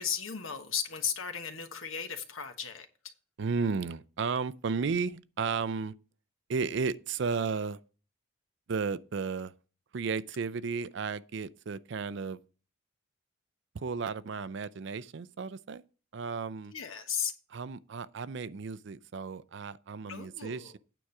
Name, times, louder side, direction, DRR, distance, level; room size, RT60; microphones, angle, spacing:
voice 1, 0.0-2.9 16.7-17.3 20.1-20.7, left 7 dB, 75° left, 1.3 m, -35 dB
voice 2, 3.4-5.9 6.5-7.8 8.7-9.5 9.9-12.4 13.7-15.8 16.1-16.7 17.5-20.8, right 5 dB, 55° right, 0.4 m, -34 dB
9.1 x 4.8 x 7.0 m
head